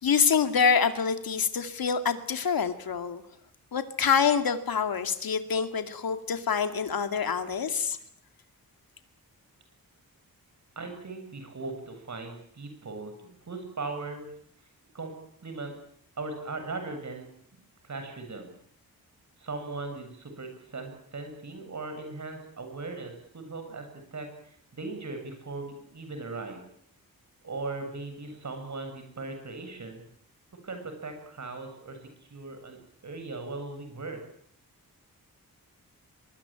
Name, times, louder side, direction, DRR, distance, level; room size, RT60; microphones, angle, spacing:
voice 1, 0.0-3.2 3.7-8.0, left 6 dB, 75° left, 9 dB, 2.4 m, -26 dB
voice 2, 10.8-14.3 14.9-15.1 15.4-15.7 16.2-17.3 17.8-18.5 19.4-23.9 24.1-26.6 27.4-30.0 30.6-32.0 32.3-34.2, right 3 dB, 50° right, 6 dB, 7.6 m, -38 dB
23.5 x 22.5 x 9.0 m, 0.69 s
wide cardioid pair, 135°, 36 cm